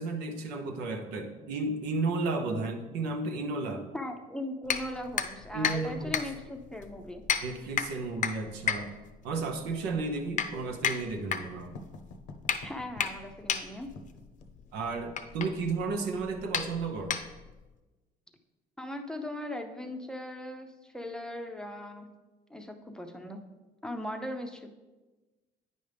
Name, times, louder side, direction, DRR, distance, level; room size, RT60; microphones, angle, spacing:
voice 1, 0.0-3.9 5.5-6.1 7.4-8.9 9.2-11.8 14.7-17.2, right 3 dB, 90° right, 4 dB, 0.9 m, -33 dB
voice 2, 3.9-7.2 12.6-13.9 18.8-22.1 22.5-23.4 23.8-24.7, left 1 dB, 5° left, 4 dB, 0.6 m, -39 dB
sound 1, 4.6-17.7, left 8 dB, 50° left, 0.6 m, -34 dB
Writing, 9.5-15.5, left 2 dB, 85° left, 0.7 m, -51 dB
9.4 x 5.2 x 3.4 m, 1.2 s
cardioid pair, 110°, 17 cm